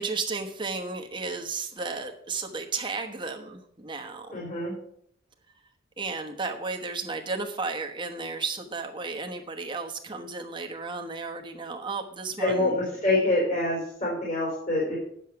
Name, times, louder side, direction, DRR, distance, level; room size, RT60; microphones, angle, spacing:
voice 1, 0.0-4.4 6.0-12.8, right 4 dB, 25° right, 4 dB, 1.1 m, -33 dB
voice 2, 4.3-4.7 12.4-15.0, left 2 dB, 40° left, -4 dB, 3.7 m, -26 dB
9.6 x 7.2 x 5.9 m, 0.69 s
head